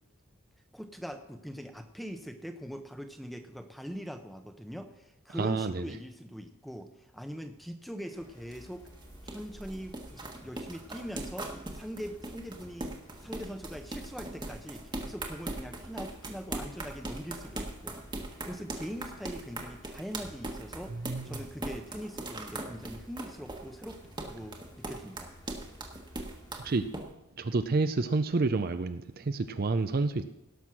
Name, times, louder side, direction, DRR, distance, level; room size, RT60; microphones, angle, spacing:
voice 1, 0.7-8.9 9.2-12.9 13.2-18.0 18.3-21.0 21.2-24.0 24.2-25.3, equal, ahead, 0.8 m, -42 dB
voice 2, 5.3-6.0 20.9-21.4 26.6-26.8 27.4-30.2, right 3 dB, 45° right, 0.5 m, -29 dB
sound 1, 8.0-27.0, right 2 dB, 20° right, 1.3 m, -40 dB
sound 2, 8.2-26.9, equal, 15° left, 1.6 m, -54 dB
17.5 x 6.2 x 6.2 m
head